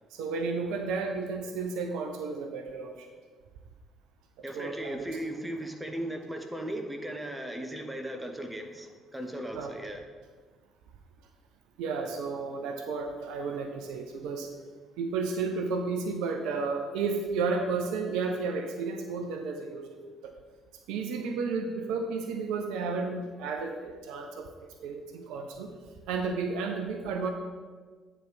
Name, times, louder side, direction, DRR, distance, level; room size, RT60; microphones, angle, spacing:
voice 1, 0.1-3.1 4.5-5.1 9.5-9.7 11.8-14.5 15.0-20.3 20.9-25.7 26.1-27.3, right 4 dB, 60° right, 5 dB, 0.6 m, -32 dB
voice 2, 4.4-10.0, right 1 dB, 10° right, 4 dB, 1.0 m, -37 dB
9.2 x 3.4 x 5.9 m, 1.5 s
figure-of-eight pair, 50°, 0 cm